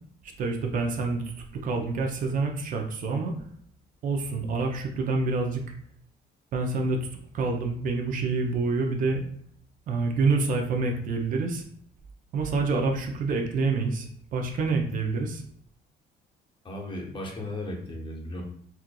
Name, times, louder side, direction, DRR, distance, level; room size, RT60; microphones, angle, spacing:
voice 1, 0.4-1.2 1.5-3.3 4.0-5.6 6.5-7.1 7.3-9.2 9.9-11.6 12.3-14.1 14.3-15.4, right 3 dB, 55° right, 3 dB, 0.6 m, -27 dB
voice 2, 16.6-18.4, left 1 dB, 30° left, 0 dB, 0.8 m, -35 dB
4.3 x 2.5 x 2.3 m, 0.63 s
cardioid pair, 125°, 17 cm